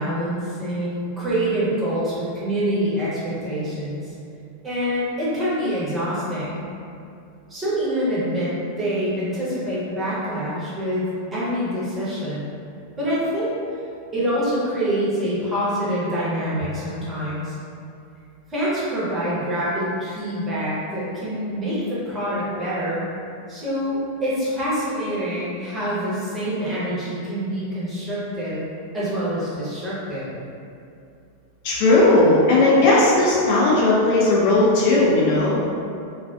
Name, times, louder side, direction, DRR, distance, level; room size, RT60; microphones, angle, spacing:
voice 1, 0.0-4.1 4.6-6.6 7.5-12.5 13.0-13.5 14.1-17.6 18.5-23.0 23.5-28.6 28.9-30.3, equal, 15° right, -9 dB, 0.9 m, -25 dB
voice 2, 31.6-35.6, left 2 dB, 45° left, -5 dB, 0.4 m, -16 dB
2.3 x 2.3 x 2.4 m, 2.5 s
figure-of-eight pair, 90°, 0 cm